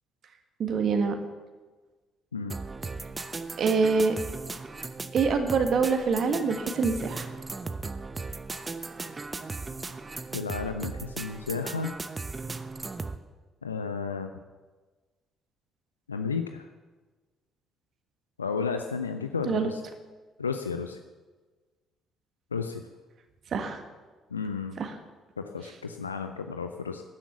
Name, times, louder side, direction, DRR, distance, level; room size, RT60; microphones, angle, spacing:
voice 1, 0.6-1.1 3.6-4.1 5.1-7.3 19.5-19.7 23.5-23.8 24.8-24.9, right 5 dB, 50° right, 6 dB, 1.7 m, -25 dB
sound 1, 2.5-13.2, right 3 dB, 25° right, 0.9 m, -37 dB
voice 2, 10.3-12.0 13.6-14.3 16.1-16.7 18.4-19.8 20.4-21.0 22.5-22.8 24.3-24.8 25.4-27.0, left 5 dB, 85° left, 7 dB, 0.5 m, -32 dB
13.5 x 11.0 x 7.2 m, 1.3 s
figure-of-eight pair, 45°, 0 cm